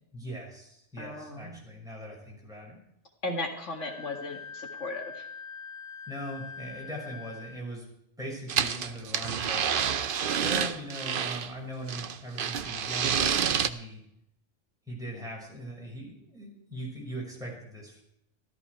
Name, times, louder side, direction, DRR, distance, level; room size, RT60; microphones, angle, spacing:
voice 1, 0.1-2.8 6.1-7.9 8.2-9.7 10.4-14.0 14.9-18.0, equal, 5° right, -3 dB, 5.7 m, -40 dB
voice 2, 1.0-1.6 3.2-5.3, left 2 dB, 90° left, 3 dB, 2.3 m, -36 dB
Wind instrument woodwind instrument, 3.8-7.7, left 5 dB, 55° left, 1.0 m, -43 dB
sound 1, 8.5-11.5 11.9-13.7, right 7 dB, 55° right, 0.8 m, -28 dB
13.5 x 13.5 x 4.7 m, 0.78 s
omnidirectional pair, 1.2 m